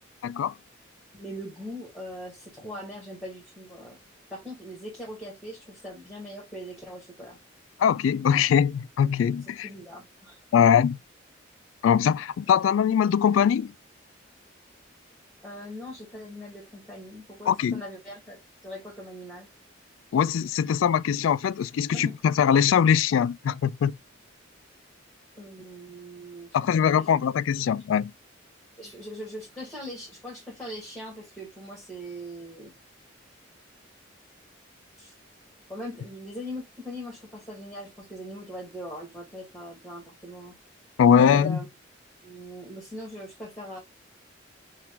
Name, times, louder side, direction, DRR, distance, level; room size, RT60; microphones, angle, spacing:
voice 1, 0.2-0.5 7.8-9.7 10.5-11.0 11.8-13.7 17.5-17.8 20.1-24.0 26.5-28.1 41.0-41.6, left 8 dB, 80° left, 0.3 m, -22 dB
voice 2, 1.1-4.0 4.3-7.4 9.6-10.4 15.4-19.5 21.9-22.1 25.4-26.6 26.9-27.1 28.8-32.7 35.0-35.1 35.7-40.6 41.1-41.7 42.2-43.8, equal, 5° left, 1.9 m, -40 dB
5.9 x 2.4 x 3.2 m
head